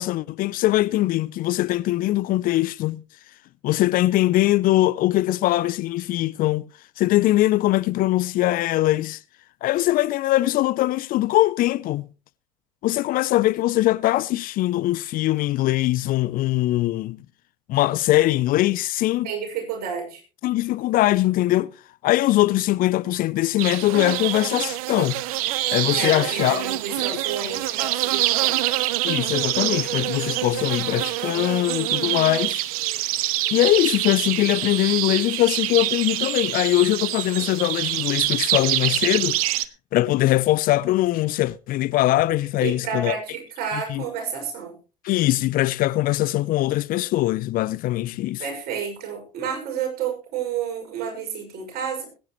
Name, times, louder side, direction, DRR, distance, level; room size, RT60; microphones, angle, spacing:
voice 1, 0.0-3.0 3.6-6.7 7.0-9.2 9.6-12.1 12.8-17.2 17.7-19.3 20.4-21.7 22.0-25.2 25.7-26.6 29.0-32.6 33.5-39.4 39.9-43.2 43.7-44.0 45.0-48.4, left 16 dB, 50° left, 0.6 m, -21 dB
voice 2, 19.2-20.2 25.9-28.6 42.6-44.7 48.4-52.1, right 7 dB, 55° right, 6.2 m, -30 dB
sound 1, 23.6-39.7, right 16 dB, 70° right, 0.7 m, -25 dB
21.0 x 9.7 x 3.1 m
hypercardioid pair, 70°, 19 cm